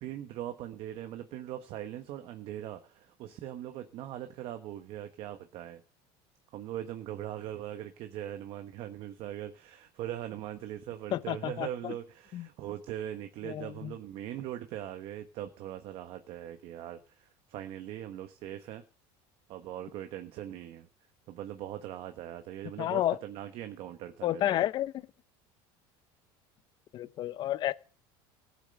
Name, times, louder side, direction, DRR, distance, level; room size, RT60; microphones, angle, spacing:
voice 1, 0.0-5.8 6.5-18.8 19.5-20.9 21.3-24.6, right 12 dB, 55° right, 1.2 m, -41 dB
voice 2, 11.1-11.9 12.3-12.5 13.4-13.9 22.8-23.2 24.2-24.9 26.9-27.7, left 13 dB, 40° left, 0.7 m, -31 dB
15.5 x 8.3 x 6.6 m
cardioid pair, 140°, 12 cm